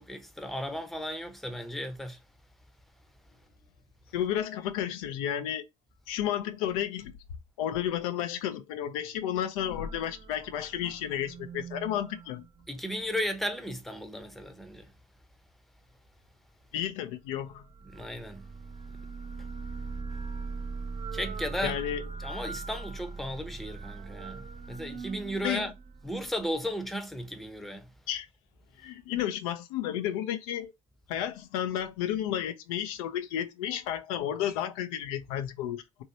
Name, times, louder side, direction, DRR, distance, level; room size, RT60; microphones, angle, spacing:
voice 1, 0.0-2.2 12.7-14.9 17.8-18.5 21.1-21.8 22.2-25.7 26.0-27.9, equal, ahead, 0.7 m, -35 dB
voice 2, 4.1-5.7 6.1-7.1 7.6-12.4 16.7-17.6 21.6-22.0 22.3-22.4 25.4-25.7 28.1-28.3 28.8-30.7 31.1-36.0, left 10 dB, 85° left, 0.5 m, -32 dB
sound 1, 9.5-13.1 17.4-26.6, right 4 dB, 40° right, 0.6 m, -41 dB
3.0 x 2.7 x 2.7 m
supercardioid pair, 70°, 18 cm